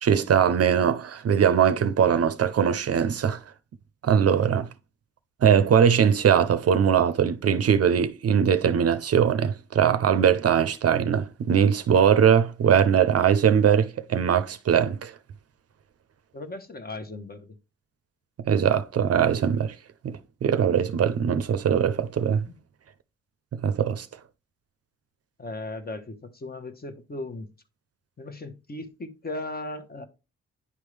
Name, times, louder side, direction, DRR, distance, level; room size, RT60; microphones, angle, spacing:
voice 1, 0.0-3.4 4.0-4.7 5.4-15.1 18.5-19.7 20.0-22.5 23.5-24.1, right 8 dB, 50° right, 0.6 m, -21 dB
voice 2, 16.3-17.6 25.4-27.5 28.2-30.1, left 2 dB, 30° left, 1.0 m, -37 dB
9.7 x 3.5 x 3.3 m
cardioid pair, 75°, 30 cm